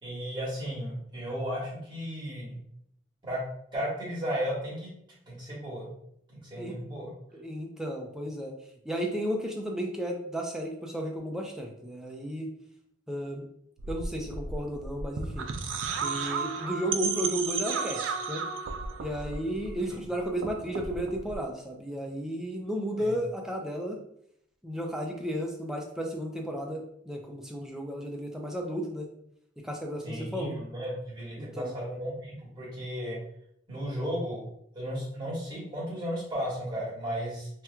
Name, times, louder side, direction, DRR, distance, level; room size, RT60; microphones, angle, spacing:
voice 1, 0.0-2.6 3.2-3.4 3.7-4.9 5.3-5.9 6.3-7.1 23.0-23.1 30.0-33.2 33.7-34.5 34.7-37.5, equal, 25° right, -8 dB, 1.4 m, -34 dB
voice 2, 7.3-8.5 8.8-12.5 13.1-13.5 13.9-15.5 16.0-18.4 19.0-24.0 24.6-29.1 29.6-30.6 31.4-31.7, equal, 5° right, 1 dB, 0.4 m, -33 dB
sound 1, 13.8-20.0 20.3-21.4, right 5 dB, 75° right, 0.4 m, -34 dB
4.3 x 2.2 x 2.3 m, 0.73 s
head